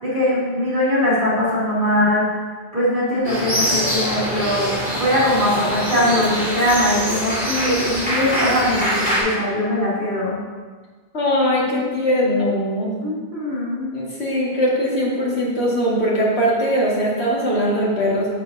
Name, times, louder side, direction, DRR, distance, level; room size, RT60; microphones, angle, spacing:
voice 1, 0.0-2.3 2.7-4.7 4.9-10.4 13.0-13.9, left 1 dB, 50° right, -9 dB, 2.7 m, -21 dB
sound 1, 3.2-9.2, equal, 10° right, 2.3 m, -24 dB
voice 2, 11.1-12.9 13.9-18.3, equal, 80° left, -6 dB, 2.3 m, -20 dB
10.5 x 7.7 x 2.7 m, 1.5 s
omnidirectional pair, 1.1 m